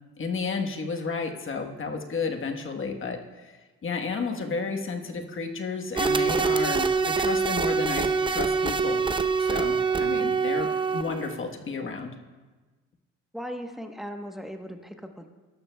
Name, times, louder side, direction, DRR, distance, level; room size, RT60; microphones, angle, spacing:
voice 1, 0.2-9.0 9.4-12.1, left 4 dB, 45° left, 3 dB, 1.2 m, -32 dB
sound 1, 6.0-11.3, right 5 dB, 15° right, 0.6 m, -25 dB
voice 2, 13.3-15.3, equal, ahead, 5 dB, 1.0 m, -38 dB
18.0 x 12.0 x 2.3 m, 1.3 s
cardioid pair, 90°, 30 cm